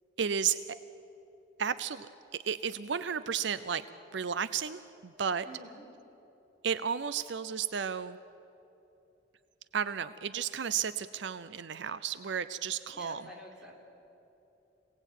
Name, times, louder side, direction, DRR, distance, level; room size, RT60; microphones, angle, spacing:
voice 1, 0.2-0.6 1.6-2.1 2.5-3.8 4.1-5.4 6.6-8.2 9.7-13.2, right 7 dB, 65° right, 14 dB, 0.6 m, -33 dB
voice 2, 5.4-5.8 12.9-13.8, equal, 5° right, -3 dB, 4.1 m, -48 dB
27.0 x 18.0 x 9.1 m, 3.0 s
head